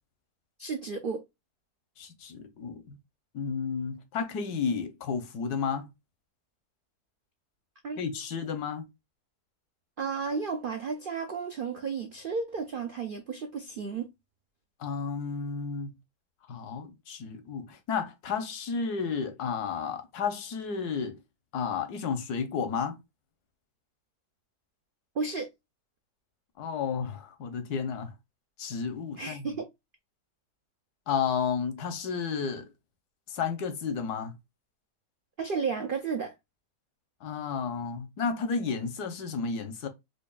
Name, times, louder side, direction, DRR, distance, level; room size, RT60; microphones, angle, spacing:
voice 1, 0.6-1.2 7.8-8.0 10.0-14.1 25.2-25.5 29.2-29.7 35.4-36.3, right 5 dB, 85° right, 0.4 m, -33 dB
voice 2, 2.0-3.0 3.3-5.9 8.0-8.9 14.8-15.9 16.5-21.2 21.5-23.0 26.6-28.1 28.6-29.6 31.1-32.7 33.3-34.4 37.2-39.9, left 6 dB, 80° left, 1.4 m, -32 dB
5.1 x 2.4 x 2.3 m
omnidirectional pair, 1.7 m